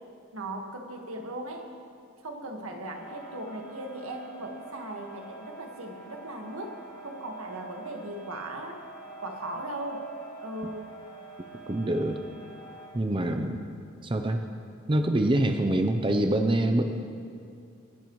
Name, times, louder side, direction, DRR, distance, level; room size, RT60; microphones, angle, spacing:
voice 1, 0.3-1.7 2.2-6.7 7.0-8.8 9.2-10.0 10.4-10.9 13.1-13.5, right 1 dB, 90° right, 2 dB, 1.7 m, -38 dB
sound 1, 2.9-12.9, right 3 dB, 80° left, 3.3 m, -46 dB
voice 2, 11.7-12.2 12.9-13.7 14.0-14.4 14.9-16.8, right 1 dB, 25° right, 5 dB, 0.6 m, -25 dB
27.5 x 11.0 x 3.2 m, 2.4 s
head